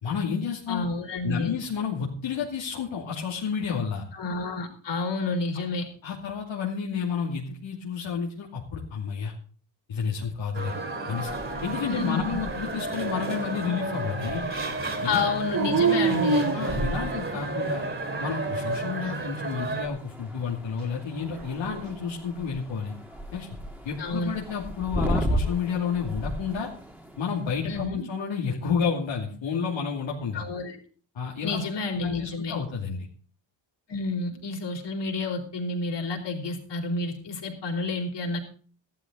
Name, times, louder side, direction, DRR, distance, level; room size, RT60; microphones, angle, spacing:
voice 1, 0.0-0.9 1.2-4.0 6.0-9.3 9.9-10.7 11.1-11.3 11.6-14.4 15.0-15.3 16.5-17.9 18.2-22.9 23.3-23.5 23.8-26.7 27.2-30.4 31.1-31.6 32.0-33.1, left 6 dB, 80° left, -3 dB, 2.9 m, -30 dB
voice 2, 0.7-1.5 4.1-5.8 11.8-12.4 15.0-16.5 24.0-24.3 27.7-28.0 30.3-30.8 31.4-32.5 33.9-38.4, left 3 dB, 65° left, 2 dB, 4.4 m, -30 dB
sound 1, 10.5-19.9, right 2 dB, 25° right, 3.6 m, -32 dB
sound 2, 11.0-27.9, equal, 5° right, 2.8 m, -37 dB
Dog, 15.5-17.4 18.1-18.9 21.1-22.0, right 4 dB, 45° right, 2.0 m, -27 dB
15.0 x 12.5 x 3.9 m, 0.41 s
cardioid pair, 100°, 45 cm